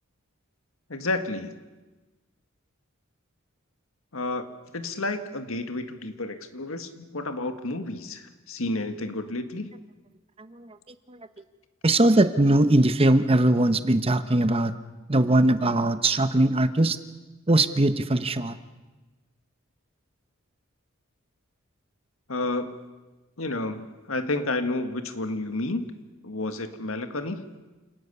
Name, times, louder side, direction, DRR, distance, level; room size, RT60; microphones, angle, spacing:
voice 1, 0.9-1.5 4.1-9.7 22.3-22.7 23.4-25.9 26.2-27.5, left 2 dB, 85° left, 8 dB, 1.8 m, -31 dB
voice 2, 10.4-10.8 11.1-11.2 11.8-14.7 15.1-17.0 17.5-18.6, right 1 dB, 30° right, 11 dB, 1.0 m, -21 dB
28.5 x 18.5 x 6.9 m, 1.2 s
head